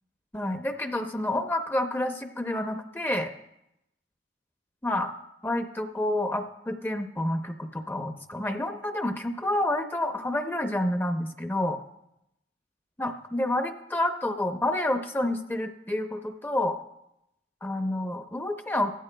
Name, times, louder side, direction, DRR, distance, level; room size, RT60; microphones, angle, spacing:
voice 1, 0.3-3.3 4.8-5.1 5.4-11.8 13.0-16.8 17.6-18.9, left 1 dB, 10° left, 6 dB, 0.5 m, -29 dB
15.5 x 13.0 x 2.2 m, 0.85 s
head